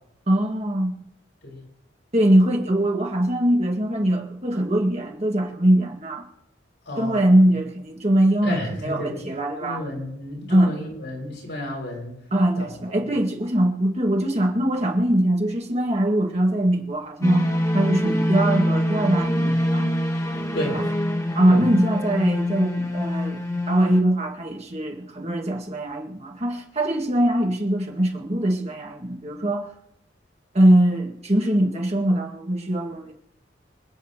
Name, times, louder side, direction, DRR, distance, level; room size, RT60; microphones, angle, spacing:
voice 1, 0.3-0.9 2.1-6.3 7.0-9.8 10.5-10.7 12.3-17.5 17.7-19.9 20.7-20.8 21.3-29.7 30.5-33.1, right 1 dB, 35° right, 2.0 m, -22 dB
voice 2, 6.9-7.4 8.4-9.2 9.6-12.1 12.6-12.8 13.0-13.1 20.5-20.8 21.5-21.6, left 1 dB, 70° left, 6.3 m, -32 dB
sound 1, 17.2-24.0, left 1 dB, 15° left, 1.2 m, -24 dB
26.5 x 8.9 x 3.0 m
head